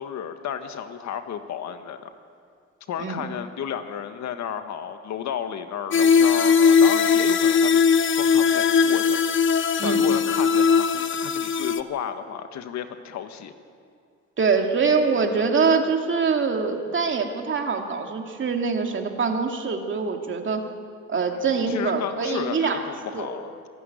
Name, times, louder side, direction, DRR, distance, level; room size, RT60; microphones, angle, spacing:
voice 1, 0.0-2.1 2.9-7.8 8.1-9.2 9.8-13.5 21.3-23.6, left 8 dB, 70° left, 8 dB, 1.6 m, -33 dB
sound 1, 5.9-11.8, left 6 dB, 40° left, 1.0 m, -19 dB
voice 2, 14.4-20.7 21.1-22.8 23.1-23.3, right 5 dB, 40° right, 3 dB, 2.6 m, -24 dB
26.5 x 12.0 x 10.0 m, 2.4 s
cardioid pair, 95°, 29 cm